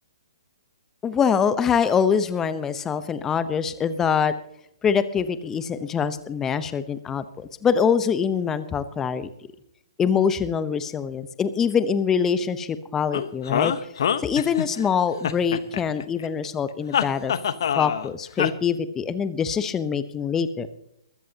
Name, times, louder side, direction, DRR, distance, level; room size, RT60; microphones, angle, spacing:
voice 1, 1.0-4.3 4.8-9.3 10.0-13.7 14.2-17.3 17.7-20.7, left 7 dB, 15° left, 13 dB, 0.8 m, -24 dB
sound 1, 13.1-14.9 15.2-16.3 16.9-18.1 18.4-18.5, left 8 dB, 60° left, 0.9 m, -25 dB
21.5 x 13.5 x 2.8 m, 0.75 s
figure-of-eight pair, 130°, 3 cm